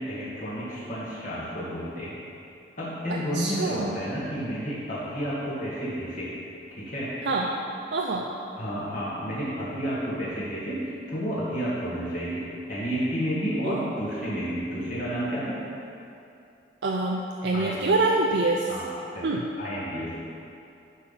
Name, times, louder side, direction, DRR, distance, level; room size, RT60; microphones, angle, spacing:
voice 1, 0.0-2.1 2.8-6.3 6.8-7.1 8.6-15.6 17.5-17.8 18.7-18.9 19.1-19.3 19.6-20.2, equal, 45° left, -10 dB, 2.0 m, -31 dB
voice 2, 3.1-4.0 7.2-7.5 7.9-8.3 13.6-13.9 16.8-18.7 19.2-19.5, right 2 dB, 75° right, -1 dB, 0.5 m, -26 dB
11.0 x 4.1 x 5.7 m, 2.6 s
head